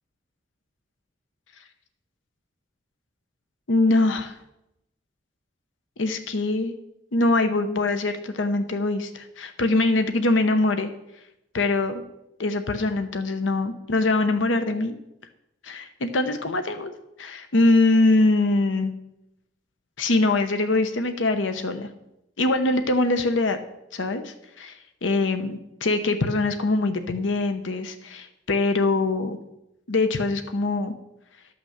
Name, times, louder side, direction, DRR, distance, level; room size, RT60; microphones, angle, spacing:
voice 1, 3.7-4.4 6.0-6.7 7.1-10.9 11.5-12.0 12.4-15.0 15.6-16.9 17.2-18.9 20.0-21.9 22.4-23.6 23.9-29.4 29.9-30.9, left 2 dB, 85° left, 8 dB, 0.9 m, -23 dB
12.5 x 5.9 x 6.5 m, 0.85 s
head